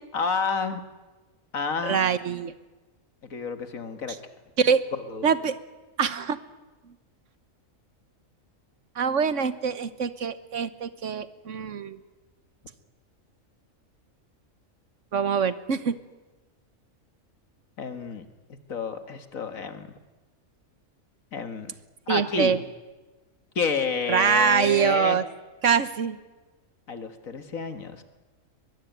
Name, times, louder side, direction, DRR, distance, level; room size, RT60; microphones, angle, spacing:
voice 1, 0.1-0.8 1.5-2.0 3.3-4.2 4.9-5.3 17.8-19.9 21.3-21.7 22.1-22.7 23.6-25.2 26.9-28.0, left 5 dB, 85° left, 8 dB, 2.1 m, -30 dB
voice 2, 1.8-2.5 4.6-4.8 5.2-5.6 6.0-6.4 9.0-12.0 15.1-15.9 22.1-22.6 24.1-25.2 25.6-26.2, right 6 dB, 65° right, 13 dB, 1.4 m, -24 dB
22.5 x 22.0 x 9.3 m, 1.2 s
omnidirectional pair, 1.4 m